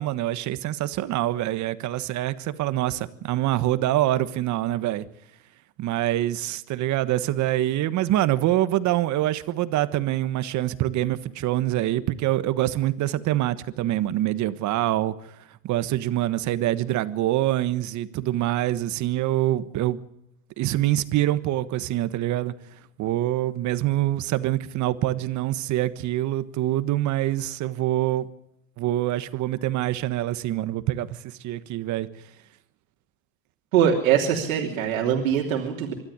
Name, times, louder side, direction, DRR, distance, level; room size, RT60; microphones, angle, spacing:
voice 1, 0.0-5.0 5.8-15.1 15.6-20.0 20.6-22.5 23.0-28.3 28.8-32.1, right 14 dB, 45° right, 1.4 m, -25 dB
voice 2, 33.7-35.9, right 8 dB, 85° right, 3.2 m, -22 dB
25.0 x 13.0 x 9.7 m
supercardioid pair, 105°, 40 cm